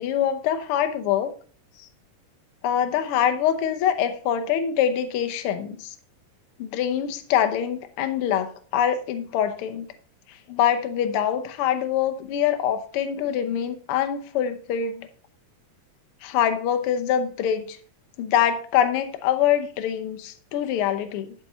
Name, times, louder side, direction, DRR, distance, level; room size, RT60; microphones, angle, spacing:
voice 1, 0.0-1.3 1.8-1.9 2.6-5.9 6.6-9.9 10.3-15.1 16.2-17.8 18.2-21.3, left 9 dB, 70° left, 8 dB, 1.3 m, -24 dB
11.0 x 6.0 x 4.2 m, 0.42 s
omnidirectional pair, 3.6 m